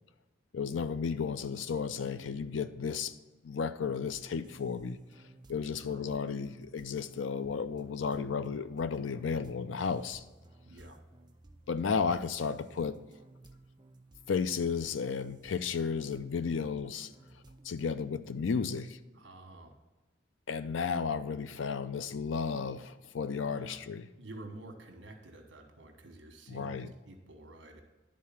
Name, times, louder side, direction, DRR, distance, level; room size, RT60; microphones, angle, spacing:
voice 1, 0.5-3.2 3.4-5.0 5.5-10.2 11.7-13.0 14.3-17.1 17.6-19.0 20.5-24.1 26.5-26.9, left 5 dB, 85° left, 13 dB, 0.5 m, -33 dB
sound 1, 3.8-17.9, right 2 dB, 25° right, 0.5 m, -57 dB
voice 2, 5.7-6.2 10.7-11.0 19.1-19.8 23.5-23.8 24.2-27.8, right 2 dB, 70° right, 5 dB, 1.3 m, -50 dB
10.5 x 3.7 x 5.8 m, 1.2 s
head